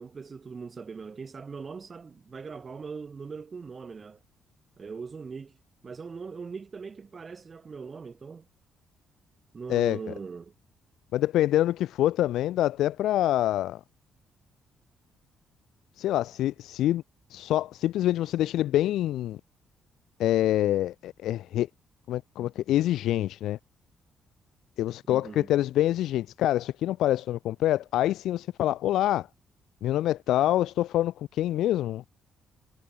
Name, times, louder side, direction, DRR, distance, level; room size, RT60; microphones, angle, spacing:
voice 1, 0.0-4.2 4.8-5.6 5.8-8.5 9.5-10.5 25.1-25.5, right 5 dB, 30° right, 2.3 m, -40 dB
voice 2, 11.1-13.8 16.0-17.0 17.3-19.4 20.2-21.7 22.1-23.6 24.8-29.3 29.8-32.0, left 13 dB, 85° left, 0.6 m, -26 dB
cardioid pair, 150°, 0 cm